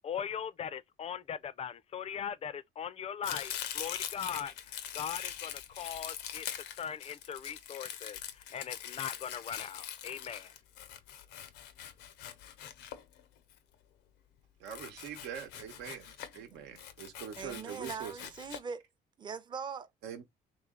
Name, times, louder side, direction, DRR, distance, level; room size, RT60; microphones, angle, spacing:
voice 1, 0.0-6.5 6.7-10.5, left 8 dB, 40° left, 0.4 m, -40 dB
Domestic sounds home sounds, 3.2-13.5 14.7-16.4 16.8-18.6, left 10 dB, 85° left, 0.6 m, -43 dB
voice 2, 14.6-18.1 20.0-20.2, right 9 dB, 90° right, 1.0 m, -43 dB
voice 3, 17.4-18.8 19.2-19.9, right 6 dB, 25° right, 0.6 m, -41 dB
3.1 x 3.1 x 3.7 m
cardioid pair, 110°, 17 cm